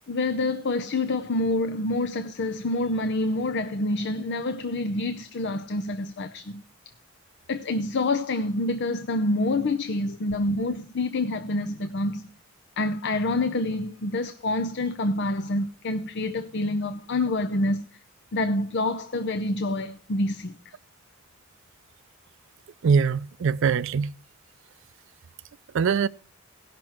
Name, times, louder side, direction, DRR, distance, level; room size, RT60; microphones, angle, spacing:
voice 1, 0.1-6.6 7.5-12.3 12.8-17.9 18.3-20.7, left 2 dB, 60° left, 0.6 m, -27 dB
voice 2, 22.8-24.1 25.7-26.1, right 6 dB, 65° right, 0.4 m, -22 dB
17.5 x 6.0 x 4.3 m
head